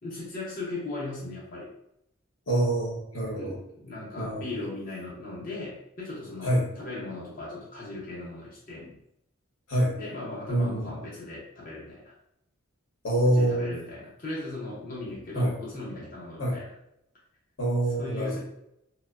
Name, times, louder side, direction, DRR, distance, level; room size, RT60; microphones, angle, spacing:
voice 1, 0.0-1.7 3.3-9.0 9.9-12.1 13.2-16.7 18.0-18.4, left 2 dB, 40° left, -6 dB, 0.6 m, -38 dB
voice 2, 2.5-3.6 4.2-4.5 6.4-6.7 9.7-10.0 10.5-10.9 13.0-13.7 15.3-15.5 16.4-16.6 17.6-18.4, right 1 dB, 75° left, -3 dB, 1.0 m, -26 dB
3.0 x 2.1 x 2.3 m, 0.78 s
head